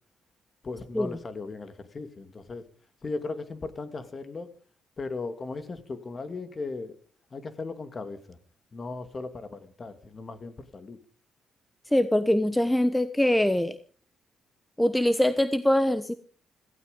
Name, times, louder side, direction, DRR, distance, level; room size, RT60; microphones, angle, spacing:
voice 1, 0.6-2.6 3.0-4.5 5.0-7.0 7.3-8.4 8.7-11.0, left 3 dB, 35° left, 11 dB, 2.4 m, -37 dB
voice 2, 11.9-13.8 14.8-16.1, left 1 dB, 5° left, 13 dB, 1.0 m, -23 dB
17.0 x 16.0 x 5.3 m, 0.42 s
cardioid pair, 90°, 0 cm